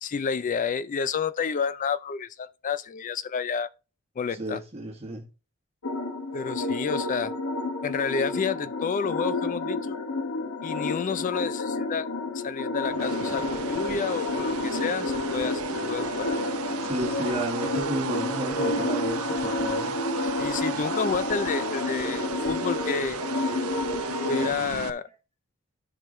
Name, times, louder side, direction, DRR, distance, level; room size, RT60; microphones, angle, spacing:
voice 1, 0.0-3.7 4.2-4.6 6.3-7.3 7.8-10.0 10.6-12.1 12.3-16.3 20.4-23.2 24.3-25.1, left 5 dB, 35° left, 0.4 m, -30 dB
voice 2, 4.4-5.3 16.9-19.9, right 1 dB, 30° right, 1.5 m, -32 dB
sound 1, 5.8-24.5, left 2 dB, 70° left, 1.0 m, -30 dB
sound 2, 12.9-24.9, right 6 dB, 90° right, 0.7 m, -35 dB
11.5 x 4.6 x 3.1 m
head